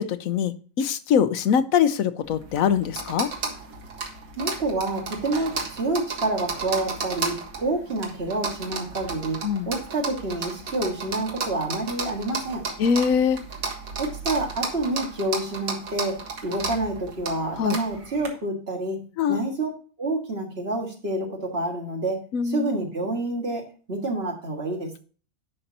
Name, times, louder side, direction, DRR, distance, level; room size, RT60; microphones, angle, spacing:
voice 1, 0.0-3.3 9.4-9.7 12.8-13.4 17.6-17.8 19.2-19.4 22.3-22.7, left 7 dB, 80° left, 13 dB, 1.1 m, -23 dB
sound 1, 2.2-18.3, right 4 dB, 85° right, 2.0 m, -34 dB
voice 2, 4.4-9.4 9.7-12.6 14.0-19.0 19.3-19.7 20.0-25.0, right 2 dB, 45° right, 1 dB, 2.1 m, -28 dB
11.0 x 5.4 x 2.8 m, 0.38 s
omnidirectional pair, 1.4 m